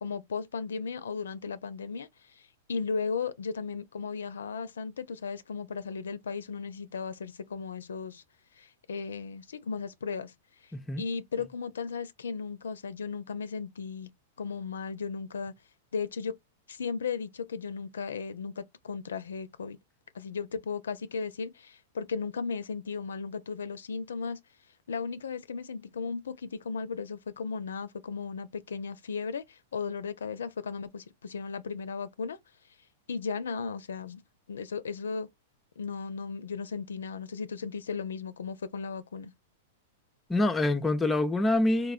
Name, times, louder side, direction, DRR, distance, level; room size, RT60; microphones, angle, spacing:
voice 1, 0.0-2.1 2.7-8.2 8.6-10.3 11.0-14.1 14.4-15.5 15.9-16.4 16.7-19.8 20.1-24.4 24.9-32.4 33.1-34.2 34.5-35.3 35.8-39.3, left 5 dB, 90° left, 0.4 m, -35 dB
voice 2, 10.7-11.0 40.3-41.9, left 2 dB, 10° left, 0.4 m, -26 dB
3.1 x 2.1 x 2.4 m
hypercardioid pair, 125°, 0 cm